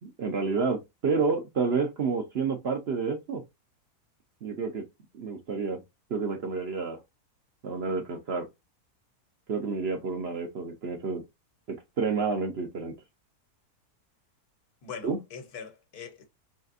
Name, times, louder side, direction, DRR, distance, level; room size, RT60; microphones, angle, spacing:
voice 1, 0.0-3.4 4.4-4.8 5.1-5.8 6.1-7.0 7.6-8.5 9.5-11.2 11.7-12.9 15.0-15.2, right 4 dB, 55° right, 0.8 m, -29 dB
voice 2, 14.8-16.2, left 6 dB, 75° left, 1.5 m, -42 dB
4.1 x 3.3 x 2.5 m
omnidirectional pair, 1.6 m